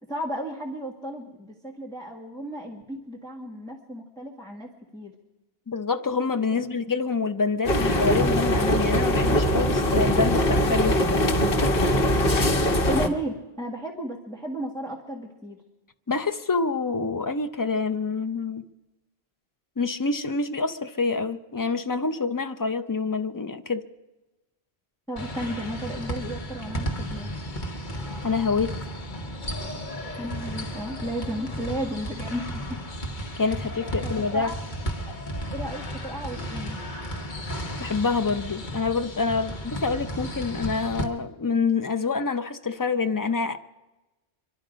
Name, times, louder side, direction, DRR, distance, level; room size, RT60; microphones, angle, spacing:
voice 1, 0.1-5.1 12.8-15.6 25.1-27.3 30.2-32.8 34.0-34.5 35.5-36.8, right 1 dB, 5° left, -2 dB, 1.4 m, -34 dB
voice 2, 5.7-11.2 16.1-18.6 19.8-23.8 28.2-28.7 33.4-34.5 37.8-43.6, left 4 dB, 30° left, 8 dB, 0.4 m, -26 dB
sound 1, 7.6-13.1, equal, 65° left, 1.4 m, -22 dB
sound 2, 25.2-41.0, equal, 45° left, 1.5 m, -34 dB
24.5 x 12.0 x 5.1 m, 1.1 s
omnidirectional pair, 1.1 m